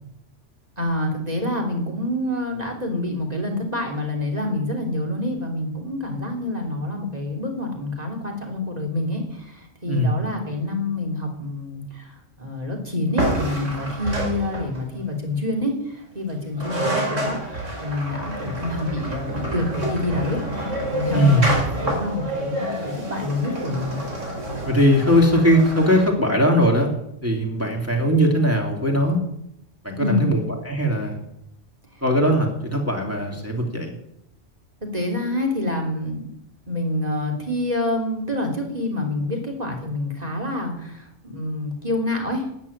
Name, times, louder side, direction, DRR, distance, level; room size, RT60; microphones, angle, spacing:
voice 1, 0.8-12.1 12.4-17.4 17.8-20.4 20.9-24.0 30.0-30.4 34.9-36.3 36.7-42.5, left 1 dB, 35° right, 1 dB, 3.4 m, -27 dB
sound 1, 13.2-14.9 16.3-16.4 16.6-26.1, right 1 dB, 90° right, 4.4 m, -28 dB
voice 2, 21.1-21.5 24.6-26.9 27.2-29.2 29.8-31.2 32.0-33.9, equal, 10° right, 0 dB, 2.8 m, -19 dB
13.0 x 8.9 x 9.7 m, 0.79 s
omnidirectional pair, 1.2 m